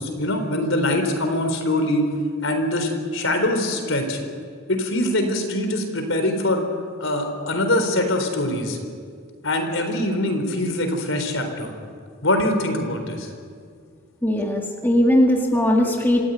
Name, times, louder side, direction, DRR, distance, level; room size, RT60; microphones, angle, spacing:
voice 1, 0.0-2.1 2.4-4.2 4.7-6.6 7.0-8.8 9.4-11.7 12.2-13.3, left 1 dB, 70° left, 5 dB, 4.1 m, -23 dB
voice 2, 14.2-16.2, left 1 dB, 10° left, 0 dB, 1.9 m, -19 dB
27.0 x 15.5 x 9.4 m, 2.1 s
head